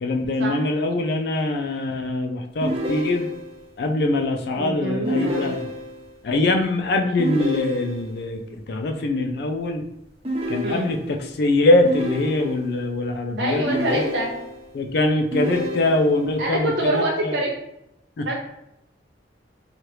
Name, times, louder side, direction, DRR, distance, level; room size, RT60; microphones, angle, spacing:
voice 1, 0.0-3.3 3.8-5.7 6.2-9.8 10.5-14.1 14.7-17.3 18.2-18.3, left 2 dB, 60° left, 4 dB, 0.4 m, -23 dB
sound 1, 2.6-3.6 5.0-6.1 7.2-8.2 10.2-11.3 11.8-12.8 13.7-14.7 15.3-16.3, equal, 35° right, 0.6 m, -29 dB
voice 2, 4.6-5.5 10.6-10.9 13.3-14.3 16.4-17.5 18.3-18.4, right 1 dB, 75° right, -1 dB, 0.5 m, -25 dB
2.8 x 2.4 x 3.2 m, 0.83 s
head